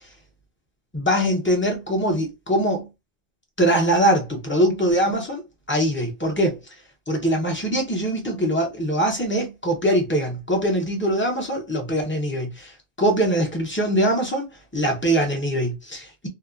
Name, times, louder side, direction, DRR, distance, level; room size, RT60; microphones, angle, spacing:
voice 1, 0.9-2.9 3.6-5.4 5.7-6.6 7.1-14.5 14.7-16.3, right 1 dB, 10° left, 0.7 m, -22 dB
2.9 x 2.3 x 2.4 m
omnidirectional pair, 1.1 m